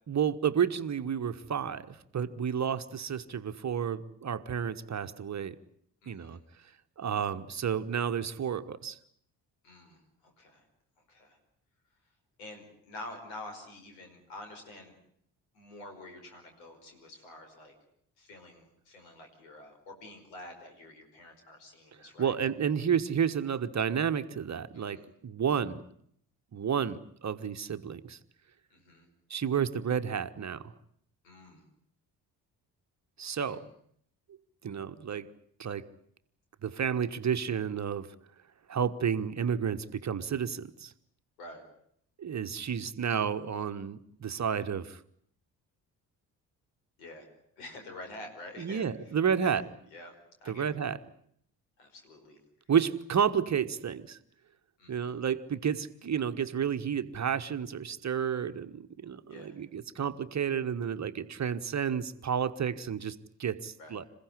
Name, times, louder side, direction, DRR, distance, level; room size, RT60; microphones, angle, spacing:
voice 1, 0.1-5.6 6.1-6.4 7.0-9.0 22.2-25.8 26.5-28.2 29.3-30.7 33.2-33.7 34.6-35.3 35.6-35.9 36.6-38.1 38.7-40.9 42.2-45.0 48.6-49.6 50.5-51.0 52.7-54.2 54.9-64.0, right 7 dB, 35° right, 10 dB, 1.3 m, -31 dB
voice 2, 6.0-6.4 9.6-10.6 11.1-11.4 12.4-14.9 15.5-17.7 18.2-22.3 24.7-25.1 28.7-29.1 31.2-31.6 33.4-33.6 41.4-41.6 47.0-47.3 47.6-48.9 49.4-49.6 49.9-50.1 50.4-50.8 51.8-52.4 54.8-55.1 59.3-59.6 63.8-64.0, left 1 dB, 75° left, 4 dB, 5.1 m, -48 dB
27.5 x 16.0 x 9.9 m, 0.68 s
figure-of-eight pair, 40°, 49 cm